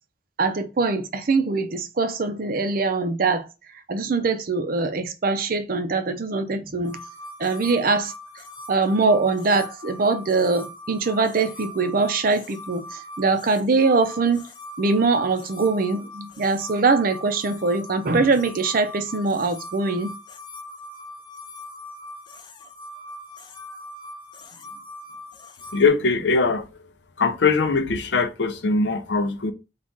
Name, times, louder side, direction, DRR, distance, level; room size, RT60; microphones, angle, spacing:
voice 1, 0.4-3.5 3.9-7.0 7.4-8.1 8.7-14.4 14.8-20.2, right 3 dB, 50° right, 0.5 m, -22 dB
sound 1, 6.9-25.9, left 1 dB, 25° left, 0.4 m, -41 dB
voice 2, 25.7-26.7 27.2-29.5, left 4 dB, 75° left, 0.6 m, -21 dB
3.6 x 2.4 x 3.8 m
head